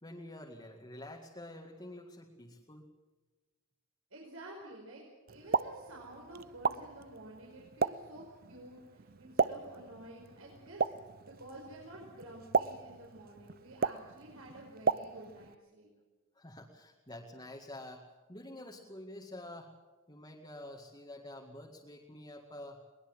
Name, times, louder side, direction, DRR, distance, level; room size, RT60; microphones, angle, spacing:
voice 1, 0.0-2.9 16.4-19.7 20.1-22.8, left 1 dB, 20° left, -1 dB, 2.1 m, -48 dB
voice 2, 4.1-5.0 5.3-10.9 11.2-15.9, right 1 dB, 75° right, -2 dB, 5.4 m, -50 dB
Explosion, 5.3-15.5, right 5 dB, 45° right, 0.6 m, -36 dB
22.0 x 20.0 x 7.6 m, 1.2 s
head